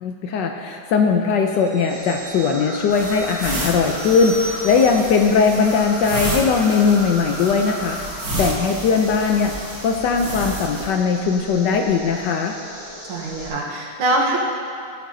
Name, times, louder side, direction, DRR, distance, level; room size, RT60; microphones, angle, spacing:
voice 1, 0.0-12.6, left 5 dB, 75° left, 4 dB, 1.1 m, -19 dB
sound 1, 1.5-6.6 6.9-7.1, right 2 dB, 35° right, 0.9 m, -39 dB
sound 2, 1.9-13.5, equal, 30° left, 2.0 m, -37 dB
sound 3, 2.9-10.9, right 2 dB, 60° right, 2.1 m, -31 dB
voice 2, 13.0-14.4, right 2 dB, 80° right, -2 dB, 2.0 m, -23 dB
13.5 x 8.6 x 2.7 m, 2.3 s
omnidirectional pair, 2.3 m